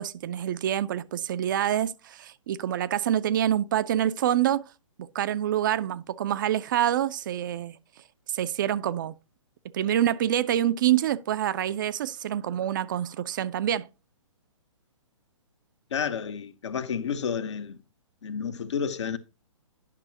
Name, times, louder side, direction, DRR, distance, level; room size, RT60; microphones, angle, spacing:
voice 1, 0.0-4.6 5.0-7.8 8.3-9.1 9.7-13.9, right 11 dB, 40° right, 0.4 m, -26 dB
voice 2, 15.9-17.8 18.2-19.2, left 7 dB, 60° left, 0.9 m, -30 dB
9.9 x 6.1 x 2.8 m
figure-of-eight pair, 125°, 17 cm